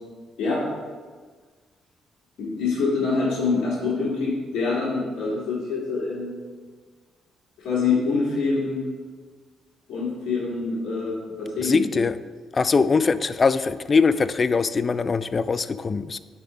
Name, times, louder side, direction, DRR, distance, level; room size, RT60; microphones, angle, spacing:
voice 1, 2.4-6.4 7.6-8.8 9.9-11.8, left 4 dB, 80° left, -9 dB, 1.9 m, -25 dB
voice 2, 11.6-12.2 12.5-16.2, left 4 dB, 35° left, 14 dB, 0.3 m, -22 dB
9.5 x 3.6 x 4.9 m, 1.5 s
cardioid pair, 90°, 0 cm